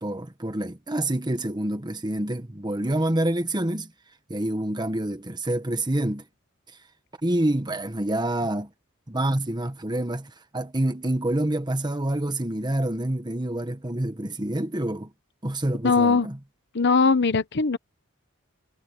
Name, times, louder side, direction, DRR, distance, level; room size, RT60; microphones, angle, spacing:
voice 1, 0.0-3.9 4.3-6.2 7.2-8.7 9.1-15.1 15.4-16.4, right 1 dB, 20° right, 1.5 m, -27 dB
voice 2, 15.8-16.3 16.7-17.8, left 4 dB, 55° left, 0.9 m, -20 dB
head